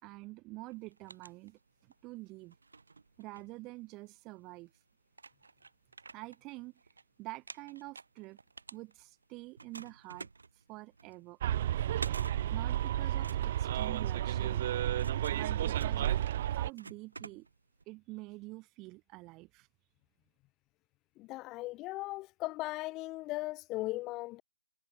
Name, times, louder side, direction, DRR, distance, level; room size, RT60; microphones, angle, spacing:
voice 1, 0.0-2.6 3.2-4.7 6.1-6.7 7.2-8.4 8.7-10.3 10.7-11.4 12.5-14.7 15.3-16.2 16.5-17.5 17.9-19.7, right 22 dB, 15° right, 5.2 m, -47 dB
sound 1, 0.7-2.0 2.5-4.2 4.7-4.8 5.1-7.0 7.3-9.2 9.6-17.8, right 4 dB, 75° right, 5.5 m, -50 dB
Bus, 11.4-16.7, right 11 dB, 35° right, 3.3 m, -32 dB
voice 2, 21.2-24.4, left 19 dB, 15° left, 2.2 m, -38 dB
hypercardioid pair, 155°, 0 cm